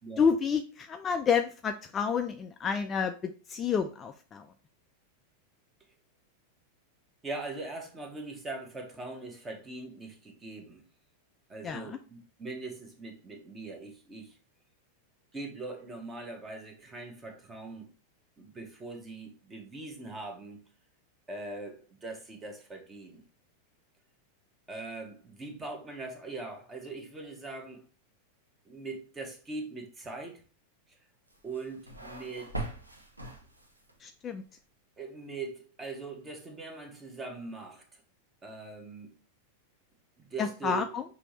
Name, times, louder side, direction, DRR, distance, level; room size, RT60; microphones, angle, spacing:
voice 1, 0.2-4.5 11.6-12.0 34.0-34.4 40.4-41.0, left 6 dB, 25° left, 0.3 m, -29 dB
voice 2, 7.2-10.8 11.5-14.4 15.3-17.9 18.4-20.6 21.3-23.2 24.7-27.8 28.7-30.4 31.4-32.7 35.0-37.8 38.4-39.1 40.2-40.9, right 3 dB, 20° right, 1.1 m, -41 dB
sound 1, 31.3-34.0, right 2 dB, 85° right, 0.8 m, -41 dB
5.9 x 2.7 x 3.0 m
figure-of-eight pair, 90°, 0 cm